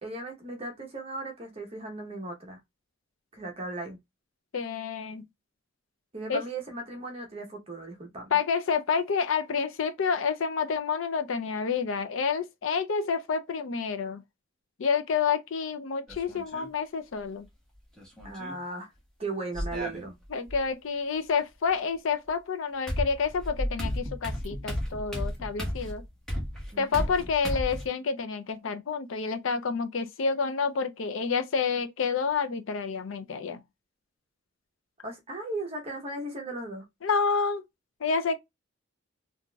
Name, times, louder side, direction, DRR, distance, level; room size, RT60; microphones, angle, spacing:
voice 1, 0.0-2.6 3.3-4.0 6.1-8.3 18.2-18.9 19.2-20.1 26.7-27.1 35.0-36.8, right 2 dB, 30° right, 0.9 m, -37 dB
voice 2, 4.5-5.2 6.3-6.4 8.3-14.2 14.8-17.5 20.3-26.0 26.8-33.6 37.0-37.6 38.0-38.4, left 5 dB, 70° left, 0.5 m, -29 dB
sound 1, 16.1-16.7 18.0-18.6 19.5-20.6 22.3-22.4 22.9-27.9, equal, 5° left, 1.0 m, -33 dB
3.8 x 2.5 x 2.2 m
head